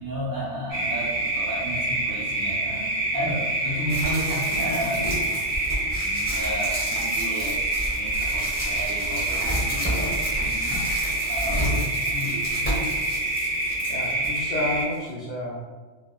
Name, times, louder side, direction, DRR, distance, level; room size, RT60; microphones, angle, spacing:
voice 1, 0.0-2.8 3.1-5.0 6.0-7.7 7.9-10.8 11.3-12.5, equal, 50° right, -6 dB, 0.8 m, -33 dB
sound 1, 0.7-14.8, right 2 dB, 10° right, 1.1 m, -27 dB
sound 2, 3.9-14.4 14.9-15.0, equal, 10° left, 0.9 m, -31 dB
voice 2, 13.9-15.6, left 1 dB, 60° left, -8 dB, 0.5 m, -30 dB
2.7 x 2.2 x 2.2 m, 1.4 s
omnidirectional pair, 1.2 m